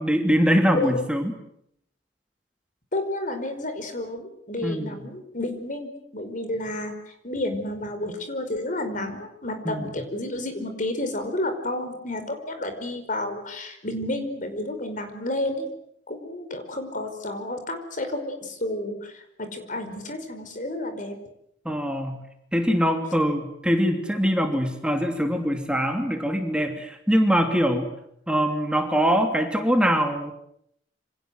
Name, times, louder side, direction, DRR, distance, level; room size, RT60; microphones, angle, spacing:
voice 1, 0.0-1.3 4.6-5.0 9.6-9.8 21.6-22.2 22.5-27.9 28.3-30.3, equal, 5° right, 4 dB, 2.9 m, -23 dB
voice 2, 0.7-1.1 2.9-15.7 16.1-21.1, left 1 dB, 45° left, 7 dB, 5.1 m, -31 dB
28.0 x 26.5 x 8.0 m, 0.73 s
head